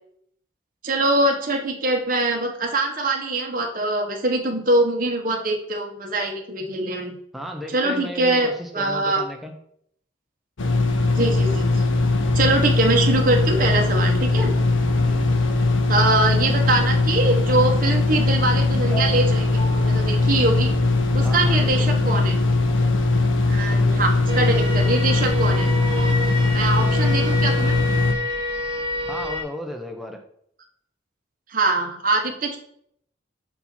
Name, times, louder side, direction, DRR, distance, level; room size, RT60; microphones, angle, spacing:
voice 1, 0.8-7.1 7.7-9.2 11.1-11.7 12.3-14.5 15.9-20.7 21.1-22.4 23.5-25.7 26.5-27.8 31.5-32.6, right 2 dB, 45° right, 2 dB, 1.0 m, -23 dB
voice 2, 7.3-9.5 15.0-15.3 21.2-21.9 23.5-24.1 26.8-27.0 29.1-30.2, equal, ahead, 2 dB, 0.7 m, -34 dB
sound 1, 10.6-28.1, left 2 dB, 80° left, 0.7 m, -20 dB
sound 2, 18.8-21.0 21.5-22.6 24.3-25.7, right 3 dB, 40° left, 2.0 m, -39 dB
sound 3, 24.3-29.4, left 1 dB, 25° right, 1.3 m, -28 dB
5.6 x 4.4 x 4.3 m, 0.67 s
head